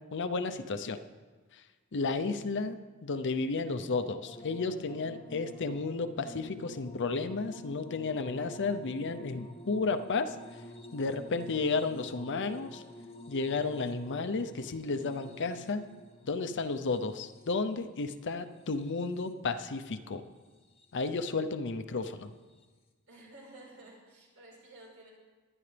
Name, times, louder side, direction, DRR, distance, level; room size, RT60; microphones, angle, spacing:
voice 1, 0.1-1.0 1.9-10.4 10.9-12.8 13.3-15.9 16.2-20.2 20.9-22.3, left 3 dB, 55° left, 9 dB, 0.7 m, -32 dB
sound 1, 4.2-19.5 20.4-21.1 22.5-22.6, left 1 dB, 30° left, 0.9 m, -49 dB
voice 2, 23.1-25.1, right 2 dB, 80° right, -3 dB, 4.7 m, -52 dB
22.0 x 9.9 x 3.4 m, 1.4 s
head